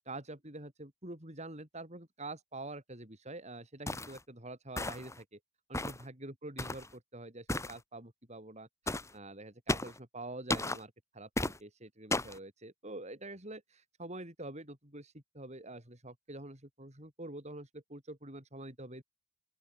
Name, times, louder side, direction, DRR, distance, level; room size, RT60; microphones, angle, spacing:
voice 1, 0.0-5.4 5.7-19.0, right 2 dB, 35° right, 6.5 m, -46 dB
sound 1, 3.9-4.2 4.8-5.2 5.7-6.0 6.6-6.9 7.5-7.8 8.9-9.1 9.7-10.0 10.5-10.8 11.4-11.6 12.1-12.4, left 2 dB, 15° left, 7.5 m, -34 dB
open air
head